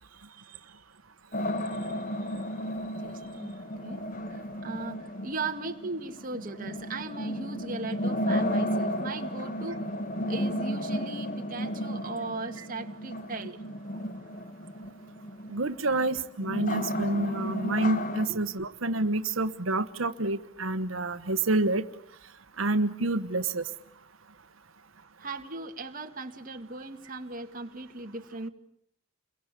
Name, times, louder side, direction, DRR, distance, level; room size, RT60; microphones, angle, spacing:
voice 1, 0.0-0.8 1.3-4.0 4.3-9.8 10.3-13.6 18.3-18.4 25.2-28.5, right 3 dB, 45° right, 5 dB, 2.2 m, -38 dB
sound 1, 1.3-18.3, equal, 40° left, 2.0 m, -33 dB
voice 2, 15.5-21.8 22.6-23.7, right 2 dB, 90° right, 9 dB, 1.3 m, -28 dB
30.0 x 23.0 x 8.4 m, 0.69 s
head